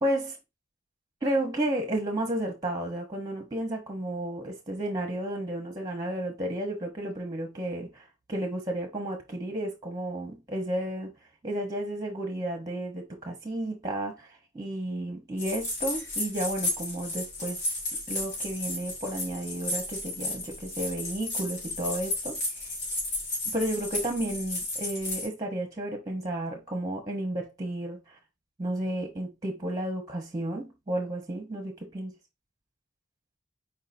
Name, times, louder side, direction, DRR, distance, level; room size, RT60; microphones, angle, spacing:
voice 1, 0.0-0.4 1.2-11.1 11.4-14.3 14.5-17.6 18.1-22.4 23.4-28.2 28.6-32.1, right 1 dB, 20° right, 1.0 m, -32 dB
sound 1, 15.4-25.3, left 2 dB, 55° left, 2.4 m, -33 dB
4.6 x 3.8 x 2.7 m
head